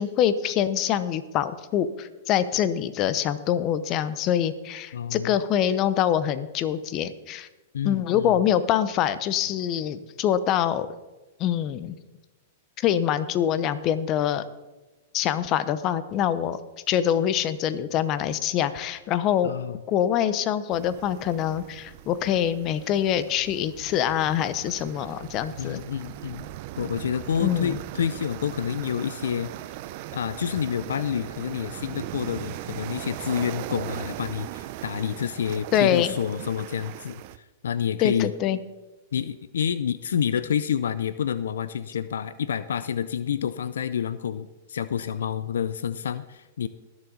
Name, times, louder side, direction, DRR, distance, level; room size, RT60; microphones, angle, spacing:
voice 1, 0.0-7.5 7.8-10.9 11.4-12.0 12.8-14.4 15.1-16.6 16.9-19.5 19.9-25.8 27.4-27.8 35.7-36.1 38.0-38.6, left 10 dB, 40° left, 14 dB, 0.8 m, -25 dB
voice 2, 4.9-5.3 7.7-8.4 19.4-19.8 25.6-26.5 26.8-29.5 30.1-37.2 37.6-38.3 39.1-46.7, left 8 dB, 85° left, 15 dB, 0.5 m, -28 dB
sound 1, 20.7-37.4, right 14 dB, 50° right, 0.6 m, -39 dB
21.0 x 7.1 x 4.0 m, 1.1 s
hypercardioid pair, 125°, 0 cm